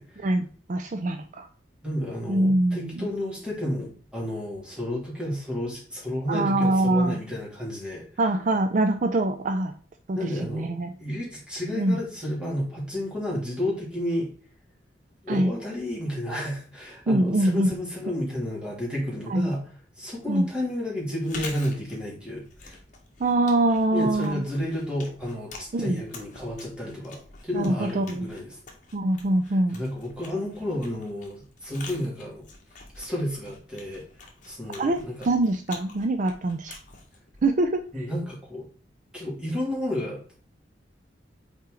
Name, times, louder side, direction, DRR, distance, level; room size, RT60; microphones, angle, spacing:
voice 1, 0.2-1.5 2.3-3.1 6.3-7.2 8.2-9.7 10.1-10.9 11.7-12.0 15.3-15.5 17.1-17.7 19.3-19.5 20.3-20.5 23.2-24.4 25.7-26.0 27.5-28.3 28.9-29.8 34.8-35.0 35.2-36.8 37.4-38.1, right 2 dB, 45° right, 7 dB, 0.4 m, -24 dB
voice 2, 1.8-8.1 10.1-10.7 11.0-14.3 15.2-19.6 20.0-22.8 23.9-28.6 29.5-32.4 33.0-34.0 34.4-35.3 37.9-38.7 39.1-40.4, left 1 dB, 5° right, -5 dB, 2.7 m, -31 dB
Chewing mastication, 21.1-38.0, left 3 dB, 45° left, 1.4 m, -46 dB
5.6 x 4.5 x 3.8 m, 0.42 s
head